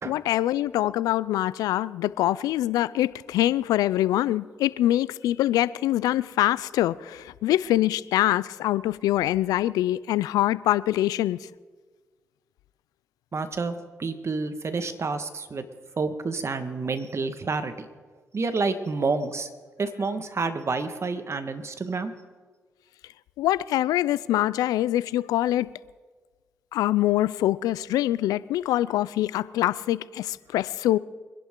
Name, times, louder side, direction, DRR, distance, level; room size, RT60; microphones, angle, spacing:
voice 1, 0.0-11.4 23.4-25.7 26.7-31.0, left 14 dB, 85° left, 0.4 m, -24 dB
voice 2, 13.3-15.7 16.0-17.9 18.3-19.5 19.8-22.1, right 4 dB, 45° right, 1.6 m, -29 dB
24.0 x 11.0 x 3.8 m
supercardioid pair, 45°, 6 cm